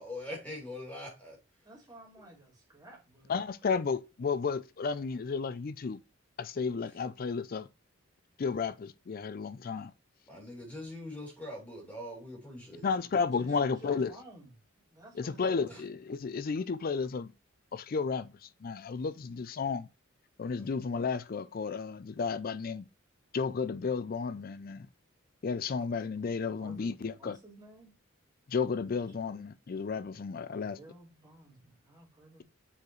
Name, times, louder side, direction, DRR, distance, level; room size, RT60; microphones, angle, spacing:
voice 1, 0.0-1.4 3.6-3.8 10.3-12.9 15.7-15.8 20.6-20.7, left 1 dB, 10° left, 2.7 m, -43 dB
voice 2, 1.6-3.3 13.3-14.6 14.9-15.8 26.5-27.9 28.8-29.2 30.4-32.4, right 1 dB, 20° right, 2.5 m, -53 dB
voice 3, 3.3-6.0 6.4-7.7 8.4-9.9 12.8-14.1 15.2-17.3 17.7-19.9 20.4-22.9 23.3-24.9 25.4-27.4 28.5-30.8, left 5 dB, 45° left, 0.4 m, -33 dB
7.1 x 4.8 x 3.1 m
head